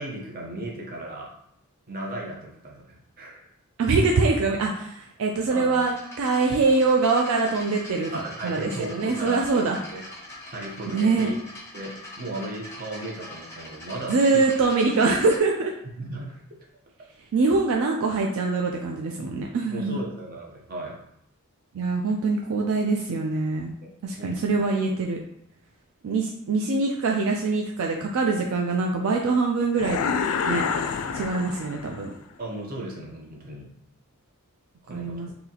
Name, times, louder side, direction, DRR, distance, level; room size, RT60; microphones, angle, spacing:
voice 1, 0.0-1.3 1.9-3.5 5.5-5.7 8.1-10.0 10.5-11.4 11.7-14.4 16.0-16.4 19.7-21.0 23.8-23.9 24.2-24.4 32.4-33.7 34.8-35.3, right 1 dB, 45° right, -1 dB, 0.8 m, -36 dB
voice 2, 3.8-9.8 10.9-11.3 14.1-15.7 17.3-20.0 21.7-23.7 24.0-25.2 26.0-30.7 31.1-32.1 34.9-35.3, right 3 dB, 70° right, 1 dB, 0.4 m, -24 dB
sound 1, 5.8-15.4, left 1 dB, 15° left, 1.0 m, -43 dB
sound 2, 29.8-32.1, left 6 dB, 70° left, 0.3 m, -28 dB
3.9 x 2.8 x 2.8 m, 0.73 s
head